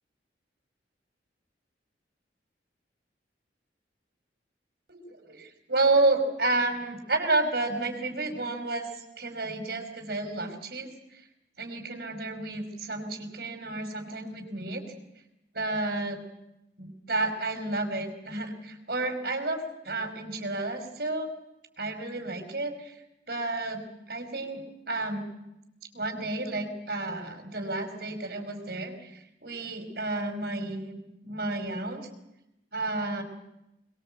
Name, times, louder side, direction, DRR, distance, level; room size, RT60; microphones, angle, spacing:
voice 1, 4.9-8.9 9.2-10.9 11.6-14.8 15.5-16.2 16.8-21.3 21.8-22.9 23.3-25.3 25.9-31.0 31.2-32.1 32.7-33.2, right 2 dB, 60° right, 5 dB, 5.2 m, -31 dB
25.5 x 22.0 x 7.9 m, 0.88 s
head